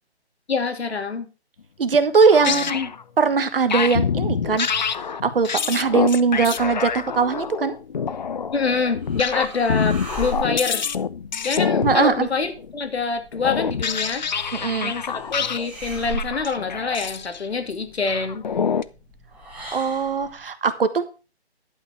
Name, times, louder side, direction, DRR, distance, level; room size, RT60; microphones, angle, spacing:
voice 1, 0.5-1.3 2.5-2.9 8.5-10.9 11.4-14.2 14.8-18.5, left 4 dB, 70° left, 7 dB, 2.5 m, -26 dB
voice 2, 1.8-2.8 3.2-4.7 5.2-7.7 11.8-12.3 14.5-14.9 19.7-21.0, right 5 dB, 55° right, 12 dB, 1.4 m, -20 dB
sound 1, 2.2-3.0 3.7-12.7 13.3-15.7 16.0-17.5 18.1-18.8, left 6 dB, 40° left, 0.6 m, -26 dB
sound 2, 8.5-20.4, equal, 5° right, 2.4 m, -39 dB
11.5 x 5.9 x 5.9 m, 0.32 s
figure-of-eight pair, 155°, 33 cm